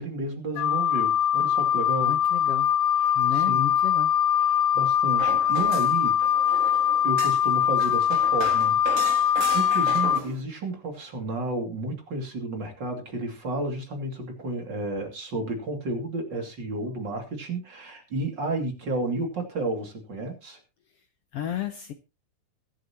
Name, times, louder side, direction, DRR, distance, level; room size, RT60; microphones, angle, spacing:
voice 1, 0.0-2.2 3.0-3.7 4.5-6.1 7.0-9.2 9.5-20.6, right 2 dB, 35° right, 3 dB, 3.1 m, -32 dB
Wind instrument woodwind instrument, 0.6-10.2, left 9 dB, 90° left, 2.6 m, -22 dB
voice 2, 2.0-2.7 3.1-4.1 21.3-21.9, left 11 dB, 65° left, 8 dB, 1.5 m, -33 dB
sound 1, 5.2-10.4, right 8 dB, 75° right, 2.9 m, -36 dB
22.5 x 7.7 x 2.9 m, 0.27 s
omnidirectional pair, 3.6 m